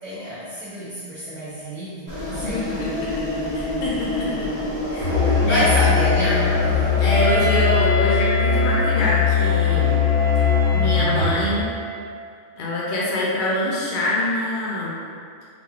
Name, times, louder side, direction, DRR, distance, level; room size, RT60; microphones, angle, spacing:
voice 1, 0.0-2.7 5.4-6.5 10.5-10.6, equal, 45° right, -10 dB, 0.7 m, -27 dB
sound 1, 2.1-7.9, left 1 dB, 20° right, 1.0 m, -28 dB
voice 2, 2.4-3.1 3.5-4.5 4.9-5.1 5.5-5.7 7.0-10.0 10.7-11.7 12.6-14.9, left 2 dB, 55° left, -6 dB, 0.6 m, -25 dB
Musical instrument, 5.0-11.4, left 7 dB, 25° left, 1.2 m, -20 dB
Wind instrument woodwind instrument, 7.1-12.1, equal, 85° left, 1.2 m, -28 dB
3.8 x 3.1 x 2.3 m, 2.2 s
omnidirectional pair, 1.2 m